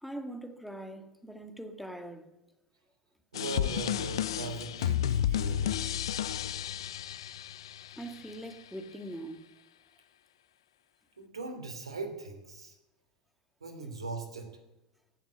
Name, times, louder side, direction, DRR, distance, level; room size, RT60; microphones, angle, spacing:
voice 1, 0.0-2.3 8.0-9.5, right 1 dB, ahead, 2.0 m, -42 dB
sound 1, 3.3-8.3, left 10 dB, 75° left, 0.5 m, -32 dB
voice 2, 3.3-6.1 11.2-12.8 13.6-14.5, right 3 dB, 85° right, 2.9 m, -40 dB
16.5 x 7.5 x 9.6 m
hypercardioid pair, 80°, 3 cm